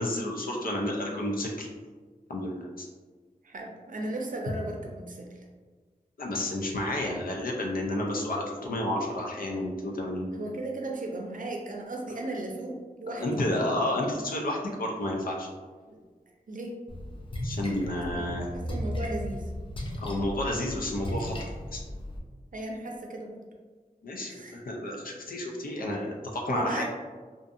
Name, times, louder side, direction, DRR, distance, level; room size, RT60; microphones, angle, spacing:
voice 1, 0.0-1.7 2.3-2.9 6.2-10.3 13.1-15.5 17.4-18.5 20.0-21.4 21.7-21.8 24.0-26.8, left 1 dB, 85° left, -1 dB, 0.5 m, -31 dB
voice 2, 3.4-5.5 10.3-13.4 15.8-16.0 16.5-16.8 17.9-18.3 18.5-19.5 22.5-23.4 24.3-24.6 25.9-26.1 26.5-26.8, right 2 dB, 70° right, 1 dB, 0.5 m, -36 dB
Splash splatter, 16.9-22.2, left 1 dB, 35° left, 0.5 m, -36 dB
2.6 x 2.5 x 2.5 m, 1.4 s
wide cardioid pair, 65°, 14 cm